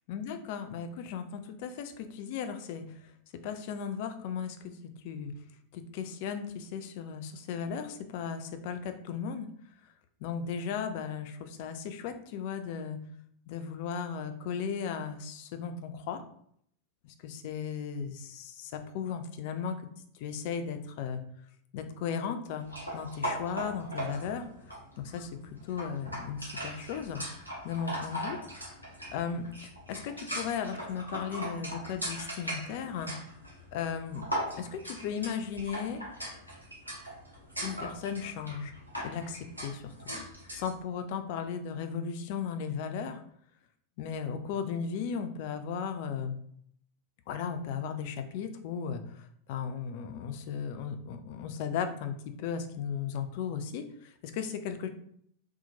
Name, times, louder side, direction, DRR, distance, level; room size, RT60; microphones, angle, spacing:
voice 1, 0.1-2.9 3.4-5.3 5.7-9.5 10.2-13.0 13.5-16.2 17.2-19.8 20.2-21.2 21.7-22.7 22.9-24.5 25.0-27.2 27.6-28.4 29.1-33.2 33.7-34.3 34.6-36.0 37.6-38.8 39.0-39.9 40.5-43.2 44.0-46.4 47.3-54.9, left 7 dB, 50° left, 8 dB, 0.3 m, -36 dB
sound 1, 22.6-40.7, equal, 85° right, 0.8 m, -39 dB
2.8 x 2.0 x 2.8 m, 0.67 s
figure-of-eight pair, 90°, 0 cm